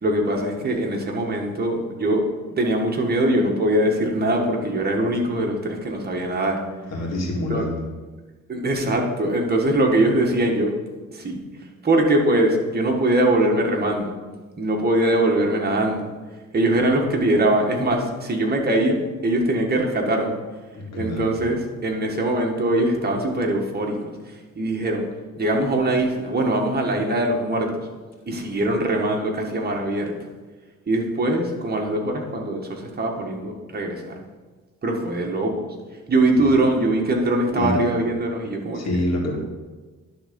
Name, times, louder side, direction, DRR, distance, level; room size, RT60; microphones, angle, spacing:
voice 1, 0.0-6.6 7.5-7.7 8.5-10.7 11.1-11.4 11.8-14.1 14.6-16.1 16.5-20.4 21.0-25.1 25.4-27.9 28.3-30.1 30.9-34.2 34.8-35.7 36.1-38.8, right 1 dB, 30° right, 0 dB, 1.7 m, -22 dB
voice 2, 6.9-7.8 20.7-21.3 36.4-36.5 37.6-37.8 38.7-39.4, left 1 dB, 60° left, -1 dB, 2.3 m, -26 dB
11.0 x 3.9 x 5.3 m, 1.3 s
cardioid pair, 90°, 30 cm